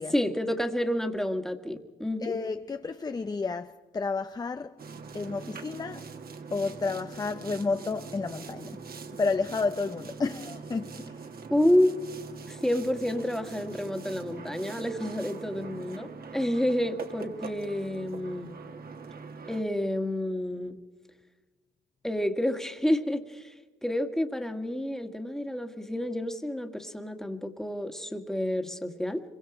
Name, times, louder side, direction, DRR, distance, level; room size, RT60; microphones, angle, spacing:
voice 1, 0.1-2.3 11.5-11.9 12.5-18.5 19.5-20.8 22.0-23.5 23.8-29.2, left 1 dB, ahead, 1.7 m, -29 dB
voice 2, 2.2-4.8 5.1-6.1 6.5-8.8 9.2-11.3, left 4 dB, 20° left, 0.6 m, -31 dB
Boat Water vehicle, 4.8-19.6, right 5 dB, 50° right, 1.8 m, -42 dB
25.5 x 23.5 x 5.0 m
cardioid pair, 90°, 20 cm